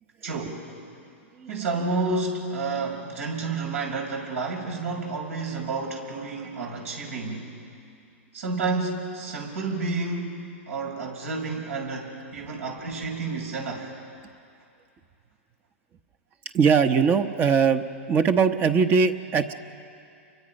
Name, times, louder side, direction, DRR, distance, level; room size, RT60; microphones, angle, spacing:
voice 1, 0.2-0.6 1.5-7.5 8.3-10.4 10.7-13.9, right 3 dB, 80° right, 0 dB, 5.7 m, -30 dB
voice 2, 16.5-19.5, right 6 dB, 30° right, 8 dB, 1.0 m, -21 dB
30.0 x 24.0 x 5.4 m, 2.5 s
hypercardioid pair, 120°, 7 cm